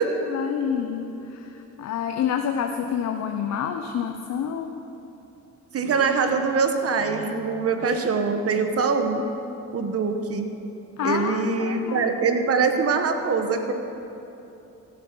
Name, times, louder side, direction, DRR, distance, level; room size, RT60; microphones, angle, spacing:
voice 1, 0.2-4.8 11.0-12.1, left 8 dB, 60° left, 5 dB, 0.7 m, -28 dB
voice 2, 5.7-9.3 9.7-10.6 11.0-13.7, right 4 dB, 50° right, 6 dB, 1.2 m, -23 dB
15.0 x 7.8 x 6.1 m, 3.0 s
cardioid pair, 90°, 30 cm